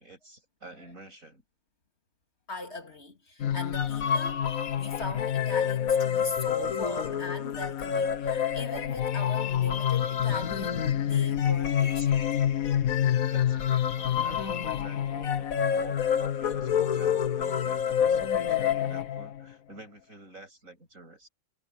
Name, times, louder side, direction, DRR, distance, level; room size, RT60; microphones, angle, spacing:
voice 1, 0.0-1.4 6.9-7.0 13.3-21.3, right 2 dB, 75° right, 8.4 m, -49 dB
voice 2, 2.5-4.4 4.8-12.4, left 2 dB, 50° left, 2.8 m, -40 dB
sound 1, 3.4-19.4, left 9 dB, 90° left, 1.5 m, -27 dB
omnidirectional pair, 1.4 m